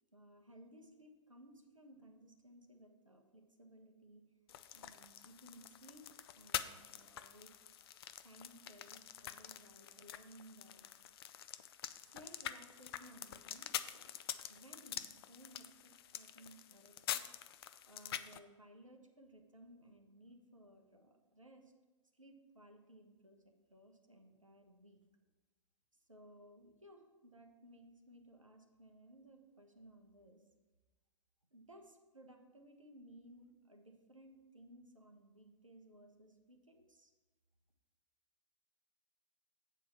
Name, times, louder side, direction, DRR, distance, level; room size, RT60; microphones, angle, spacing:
voice 1, 0.1-4.2 4.7-6.0 6.4-7.5 8.2-10.9 12.0-14.1 14.5-21.7 22.1-23.4 23.7-25.0 26.0-30.4 31.5-37.1, right 1 dB, 85° right, 2 dB, 1.3 m, -60 dB
sound 1, 4.5-18.4, left 10 dB, 50° left, 0.5 m, -46 dB
8.3 x 4.6 x 7.0 m, 1.2 s
figure-of-eight pair, 105°, 16 cm